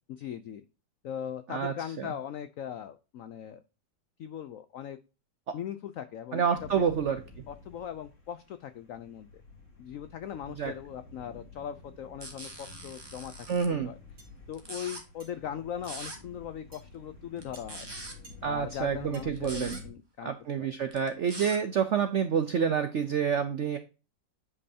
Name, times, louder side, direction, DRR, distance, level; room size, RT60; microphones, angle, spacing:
voice 1, 0.1-0.6 1.0-3.6 4.2-5.0 5.5-7.0 7.5-9.3 9.8-14.0 14.5-17.9 18.4-20.3 20.6-20.7, left 9 dB, 85° left, 11 dB, 0.7 m, -39 dB
voice 2, 1.5-2.1 6.3-7.2 10.6-10.7 13.5-13.9 18.4-19.8 20.2-23.8, right 7 dB, 75° right, 9 dB, 0.6 m, -28 dB
sound 1, 6.6-19.9, left 3 dB, 40° left, 2.6 m, -50 dB
sound 2, 12.2-13.7 14.5-15.0 15.8-16.2 17.4-18.1 19.4-19.8 20.9-21.6, right 2 dB, 15° right, 1.2 m, -42 dB
sound 3, 14.2-14.3 15.2-15.3 15.8-16.0 16.7-16.8 17.5-17.7 18.2-18.4 18.7-18.8 19.1-19.2 19.7-19.9, right 3 dB, 60° right, 2.9 m, -53 dB
9.5 x 5.4 x 2.7 m, 0.32 s
omnidirectional pair, 2.0 m